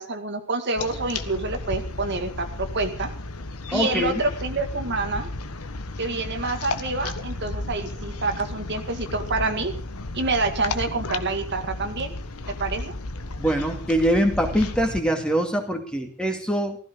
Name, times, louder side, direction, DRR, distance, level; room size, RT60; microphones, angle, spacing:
voice 1, 0.0-3.1 3.7-5.3 6.0-9.7 10.1-12.1 12.6-12.9, right 3 dB, 55° right, 5 dB, 2.0 m, -27 dB
sound 1, 0.8-15.0, left 2 dB, 85° left, 1.4 m, -33 dB
voice 2, 3.7-4.2 13.4-16.8, equal, 5° left, 3 dB, 2.5 m, -23 dB
15.5 x 15.0 x 5.3 m, 0.41 s
head